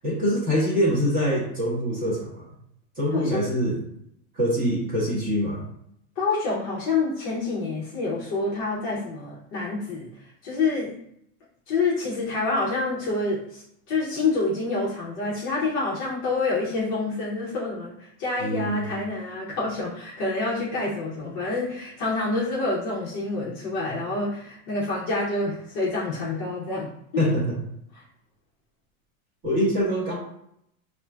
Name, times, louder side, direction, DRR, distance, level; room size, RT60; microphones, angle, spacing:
voice 1, 0.0-2.5 3.0-3.8 4.3-5.6 18.4-18.9 27.2-27.6 29.4-30.1, equal, 20° right, -4 dB, 0.7 m, -24 dB
voice 2, 3.1-3.4 6.2-10.1 10.4-10.9 11.7-27.2 27.9-28.0, left 3 dB, 30° left, -6 dB, 0.5 m, -27 dB
5.0 x 2.5 x 2.2 m, 0.74 s
supercardioid pair, 170°, 44 cm